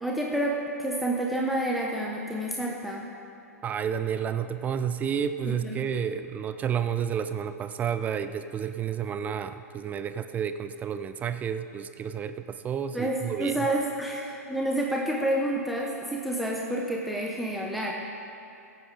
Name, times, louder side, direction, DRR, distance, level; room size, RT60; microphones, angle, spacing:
voice 1, 0.0-3.0 5.5-5.8 12.9-17.9, right 1 dB, ahead, -2 dB, 1.0 m, -29 dB
voice 2, 3.6-13.7, right 8 dB, 20° right, 10 dB, 0.4 m, -31 dB
16.0 x 8.6 x 5.1 m, 2.5 s
figure-of-eight pair, 105°, 9 cm